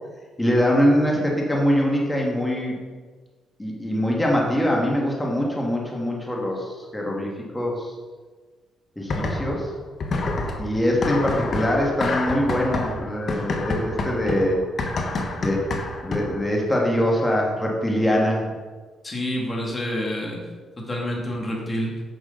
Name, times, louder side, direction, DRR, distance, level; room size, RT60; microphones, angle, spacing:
voice 1, 0.4-2.8 3.6-7.9 9.0-9.7 10.6-14.6 15.4-15.6 16.0-18.5, equal, 10° left, -2 dB, 1.9 m, -23 dB
sound 1, 9.1-9.7 10.0-16.5, left 2 dB, 50° left, 1.3 m, -28 dB
voice 2, 19.0-20.4 20.8-21.9, equal, 25° left, -2 dB, 2.4 m, -28 dB
9.2 x 6.2 x 3.9 m, 1.4 s
cardioid pair, 90°, 0 cm